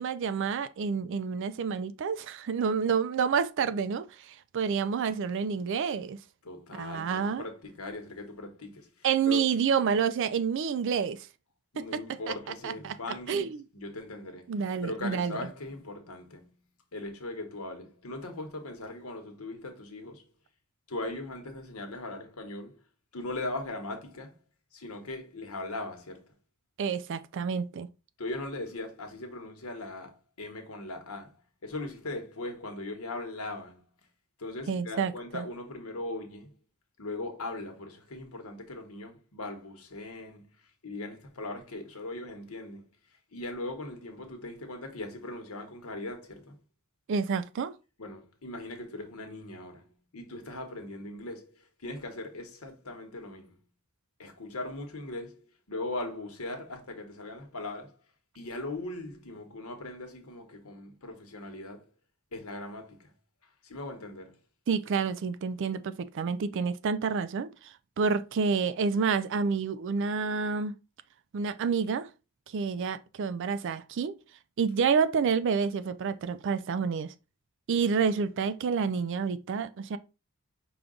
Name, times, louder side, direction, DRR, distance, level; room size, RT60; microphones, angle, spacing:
voice 1, 0.0-6.2 6.7-7.4 9.0-11.3 11.8-12.0 12.6-12.9 13.3-13.6 14.5-15.4 26.8-27.9 34.7-35.4 47.1-47.7 64.7-70.7 71.3-72.1 72.5-74.1 74.6-77.1 77.7-80.0, right 6 dB, 55° right, 0.3 m, -29 dB
voice 2, 6.4-9.4 11.7-14.5 14.8-16.6 16.9-20.3 20.9-22.7 23.1-24.4 24.7-26.3 28.2-31.4 31.6-33.9 34.4-36.6 37.0-40.6 40.8-42.9 43.3-46.6 48.0-53.6 54.2-58.0 58.3-61.9 62.3-63.1 63.6-64.4, left 2 dB, 75° left, 1.1 m, -39 dB
5.0 x 2.3 x 3.7 m
head